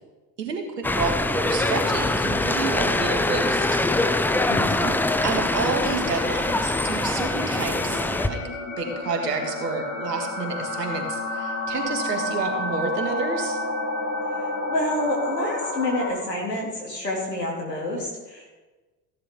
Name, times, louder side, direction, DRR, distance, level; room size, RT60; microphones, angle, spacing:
voice 1, 0.4-3.8 4.8-5.0 5.2-8.4 8.8-13.6, right 4 dB, 80° right, 4 dB, 2.0 m, -29 dB
sound 1, 0.8-8.3, left 2 dB, 5° left, 0.5 m, -23 dB
sound 2, 4.2-16.1, left 2 dB, 40° left, 4.0 m, -31 dB
voice 2, 4.5-4.9 14.7-18.5, left 1 dB, 90° left, -2 dB, 2.8 m, -28 dB
15.5 x 10.5 x 3.7 m, 1.2 s
figure-of-eight pair, 60°, 48 cm